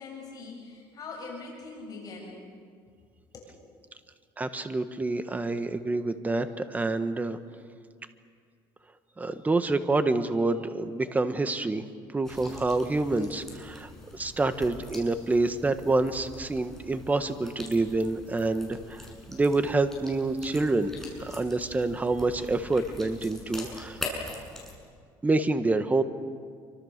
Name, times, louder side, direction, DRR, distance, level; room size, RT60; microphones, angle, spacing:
voice 1, 0.0-2.4 3.3-3.5, left 3 dB, 40° left, -2 dB, 7.2 m, -42 dB
voice 2, 4.4-7.4 9.2-11.8 12.1-20.9 21.2-24.0 25.2-26.0, right 2 dB, 15° right, 9 dB, 1.5 m, -27 dB
sound 1, 12.2-24.7, left 2 dB, 5° left, 7.4 m, -43 dB
28.5 x 25.0 x 6.7 m, 2.1 s
cardioid pair, 115°, 9 cm